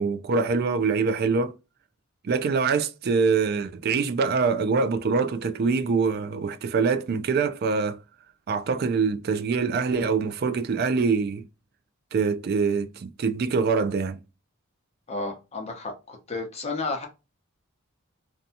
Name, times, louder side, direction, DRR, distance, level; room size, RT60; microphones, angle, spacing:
voice 1, 0.0-1.5 2.2-8.0 8.5-11.4 12.1-14.2, right 5 dB, 45° right, 0.3 m, -24 dB
voice 2, 15.1-17.1, left 3 dB, 30° left, 0.7 m, -32 dB
2.6 x 2.3 x 2.6 m
head